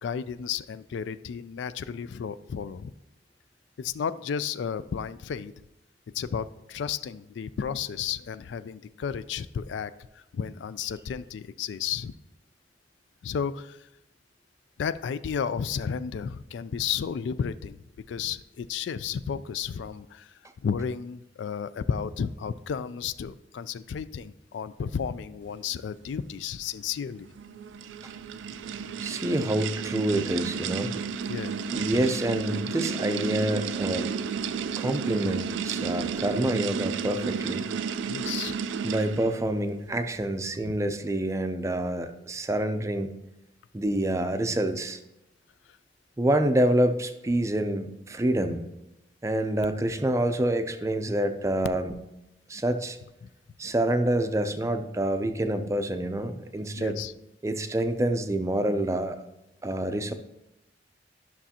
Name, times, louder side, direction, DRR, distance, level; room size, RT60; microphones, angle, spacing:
voice 1, 0.0-2.9 3.8-5.5 6.1-12.1 13.2-13.8 14.8-17.8 18.1-20.3 20.6-27.3 31.3-31.6 38.1-38.6 40.6-40.8 53.2-53.3 56.8-57.1, left 7 dB, 75° left, 15 dB, 0.3 m, -33 dB
sound 1, 27.2-39.4, right 6 dB, 80° right, 0.3 m, -32 dB
voice 2, 29.0-30.9 31.7-34.1 34.8-37.6 38.8-43.1 43.7-45.0 46.2-48.6 49.2-51.9 52.5-53.0 53.6-57.0 57.4-59.2 59.6-60.1, right 1 dB, 15° right, 7 dB, 0.4 m, -27 dB
11.5 x 6.0 x 2.8 m, 0.91 s
head